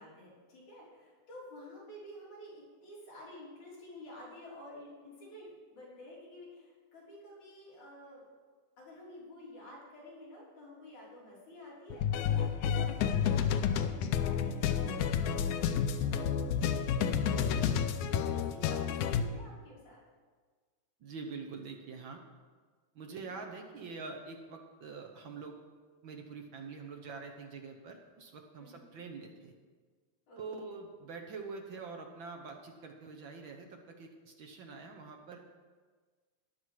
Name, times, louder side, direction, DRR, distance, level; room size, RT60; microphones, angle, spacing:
voice 1, 0.0-8.3 8.8-16.4 16.9-17.6 17.9-20.0 23.1-23.4 28.6-28.9 30.3-30.7, left 1 dB, 70° left, -6 dB, 5.1 m, -51 dB
sound 1, 11.9-19.2, left 8 dB, 90° left, 2.1 m, -30 dB
voice 2, 21.0-22.2 22.9-25.6 26.0-29.5 30.4-35.4, right 4 dB, 70° right, 3 dB, 1.2 m, -45 dB
14.0 x 11.0 x 4.8 m, 1.5 s
omnidirectional pair, 3.5 m